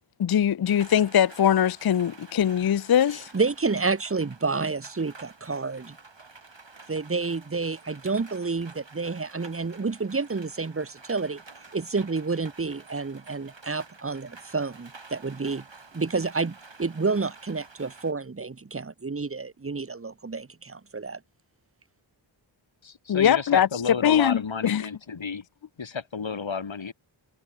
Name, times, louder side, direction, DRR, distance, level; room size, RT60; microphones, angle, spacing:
voice 1, 0.2-3.3 23.1-23.7 24.0-24.8, left 9 dB, 50° left, 0.5 m, -22 dB
Rain, 0.6-18.1, right 3 dB, 65° right, 6.7 m, -50 dB
voice 2, 3.3-6.0 6.9-11.4 11.7-15.6 15.9-21.2, right 4 dB, 30° right, 0.9 m, -29 dB
voice 3, 22.8-25.5 25.8-26.9, left 5 dB, 65° left, 2.2 m, -32 dB
wide cardioid pair, 75°, 48 cm